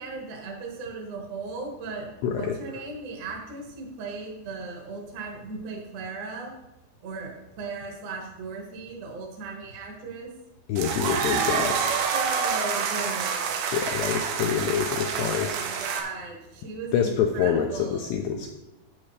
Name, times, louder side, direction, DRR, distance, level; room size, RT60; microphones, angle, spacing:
voice 1, 0.0-6.5 7.0-10.3 11.2-11.8 12.1-13.5 15.0-18.1, right 3 dB, 55° right, -1 dB, 2.4 m, -37 dB
voice 2, 2.2-2.5 10.7-11.7 13.7-15.6 16.9-18.5, left 8 dB, 80° left, 3 dB, 2.5 m, -26 dB
sound 1, 10.8-16.0, right 6 dB, 90° right, 3.6 m, -27 dB
12.0 x 8.8 x 3.3 m, 0.94 s
omnidirectional pair, 5.6 m